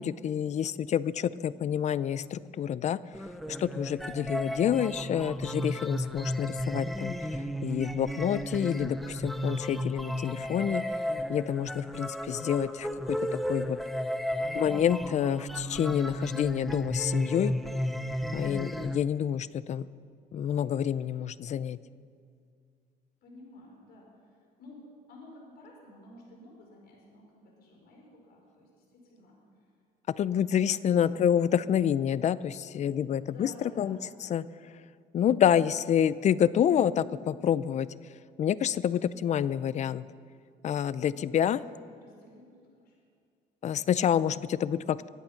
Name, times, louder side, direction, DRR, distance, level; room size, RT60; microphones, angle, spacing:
voice 1, 0.0-3.0 3.5-7.2 7.6-10.8 11.3-13.2 13.5-13.8 14.5-17.5 18.3-19.9 20.3-21.8 30.2-33.5 33.8-34.0 34.3-34.4 35.1-37.9 38.4-40.0 40.6-41.6 43.6-45.1, left 9 dB, 45° left, 18 dB, 0.5 m, -28 dB
sound 1, 3.1-19.0, equal, ahead, 0.7 m, -34 dB
voice 2, 23.2-29.7 30.7-31.3 32.7-34.2 36.7-37.3 41.1-43.0, left 2 dB, 70° left, -1 dB, 4.8 m, -52 dB
23.5 x 8.4 x 5.8 m, 2.2 s
cardioid pair, 110°, 17 cm